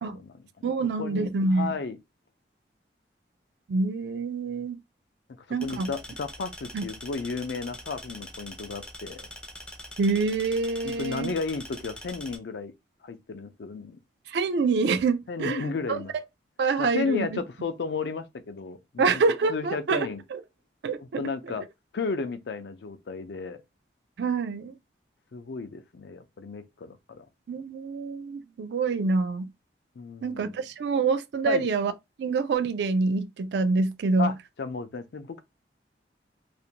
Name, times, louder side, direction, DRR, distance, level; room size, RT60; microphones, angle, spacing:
voice 1, 0.1-0.6 1.0-2.0 5.5-9.3 10.8-12.7 13.0-14.0 15.3-16.1 16.8-19.2 19.5-20.2 21.2-21.7 21.9-23.6 25.3-27.3 30.0-30.6 31.5-31.7 34.2-35.4, left 4 dB, 75° left, 0.4 m, -33 dB
voice 2, 0.6-1.7 3.7-4.8 5.5-5.9 6.7-6.8 10.0-11.3 14.3-16.0 16.6-17.4 19.0-20.4 20.8-21.2 24.2-24.8 27.5-29.5 30.2-31.9 32.2-34.3, right 4 dB, 75° right, 0.3 m, -26 dB
sound 1, 5.6-12.4, left 1 dB, 5° left, 0.4 m, -43 dB
2.5 x 2.1 x 2.8 m
head